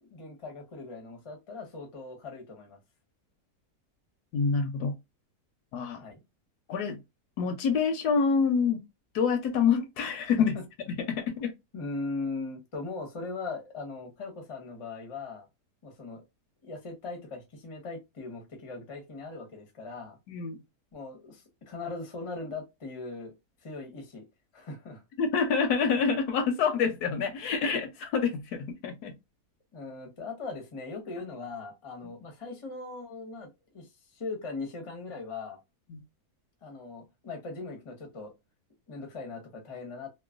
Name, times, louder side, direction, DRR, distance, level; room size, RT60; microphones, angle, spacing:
voice 1, 0.0-2.8 5.9-6.2 10.4-10.5 11.7-15.5 15.8-16.2 16.6-20.2 20.9-23.4 23.6-24.2 24.5-25.0 29.7-35.6 36.6-38.3 38.9-40.1, left 3 dB, 30° left, 0.5 m, -39 dB
voice 2, 4.3-4.9 5.7-6.0 6.7-7.0 7.4-8.8 9.1-10.6 10.9-11.5 20.3-20.6 25.2-29.1 35.9-36.0, left 5 dB, 75° left, 1.1 m, -27 dB
3.0 x 2.1 x 2.4 m
omnidirectional pair, 1.8 m